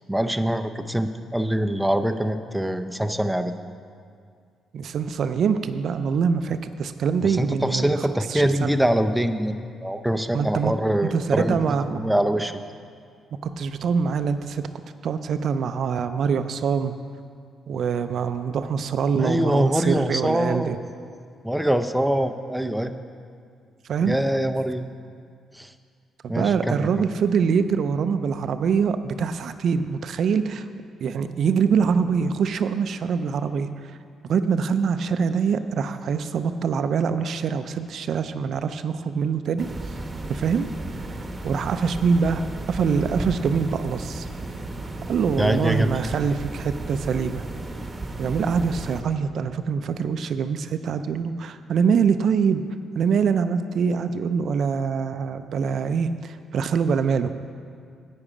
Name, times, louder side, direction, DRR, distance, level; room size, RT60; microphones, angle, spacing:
voice 1, 0.1-3.5 7.2-11.6 11.9-12.6 19.2-20.7 21.4-22.9 24.0-24.8 25.5-25.7 26.3-26.9 45.4-46.1, equal, 5° right, 8 dB, 0.5 m, -24 dB
voice 2, 4.7-8.7 10.3-10.7 11.0-12.0 13.4-14.6 15.0-16.9 17.7-20.8 23.9-24.2 26.4-30.7 31.0-33.7 34.3-39.7 40.3-40.7 41.4-44.3 45.1-47.4 48.2-52.6 53.0-57.3, right 6 dB, 65° right, 10 dB, 0.4 m, -24 dB
sound 1, 39.6-49.0, right 2 dB, 25° right, 1.0 m, -34 dB
9.7 x 8.6 x 5.0 m, 2.2 s
cardioid pair, 90°, 0 cm